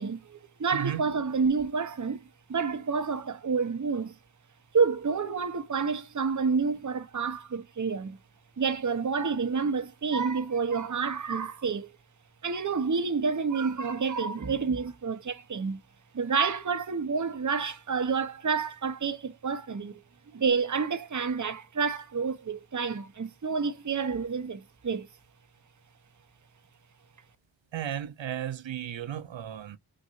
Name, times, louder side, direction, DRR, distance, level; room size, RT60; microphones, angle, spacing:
voice 1, 0.0-4.1 4.7-8.2 8.6-11.9 12.4-15.8 16.1-20.0 20.3-25.1, right 5 dB, 40° right, 0.9 m, -29 dB
voice 2, 0.7-1.0 27.7-29.8, right 10 dB, 75° right, 0.7 m, -34 dB
6.4 x 2.5 x 2.5 m
cardioid pair, 40°, 46 cm